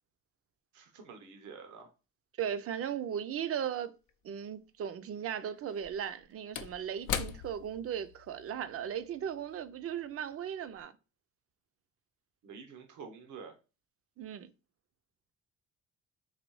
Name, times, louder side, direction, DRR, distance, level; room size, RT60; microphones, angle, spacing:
voice 1, 0.7-1.9 12.4-13.5, right 5 dB, 80° right, 0.8 m, -48 dB
voice 2, 2.4-3.9 4.2-10.9 14.2-14.5, right 9 dB, 50° right, 0.5 m, -37 dB
Slam / Wood, 4.1-4.2 5.6-10.3 10.7-10.8, left 9 dB, 80° left, 0.5 m, -41 dB
4.1 x 2.7 x 3.0 m
cardioid pair, 90°, 30 cm